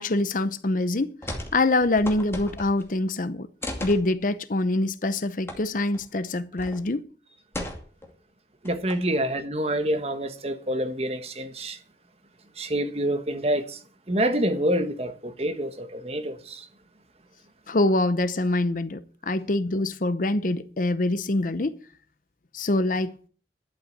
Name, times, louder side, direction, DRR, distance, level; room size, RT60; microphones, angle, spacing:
voice 1, 0.0-3.5 3.8-7.1 17.7-21.8 22.5-23.3, left 2 dB, 45° left, 0.7 m, -25 dB
sound 1, 1.2-1.6 1.8-2.9 3.6-4.0 5.5-5.6 5.9-6.0 6.6-6.8 7.5-8.1 8.6-9.2, left 1 dB, 15° left, 2.4 m, -35 dB
voice 2, 8.6-11.8 12.5-16.7, right 1 dB, 35° right, 1.4 m, -27 dB
11.5 x 8.2 x 8.1 m
head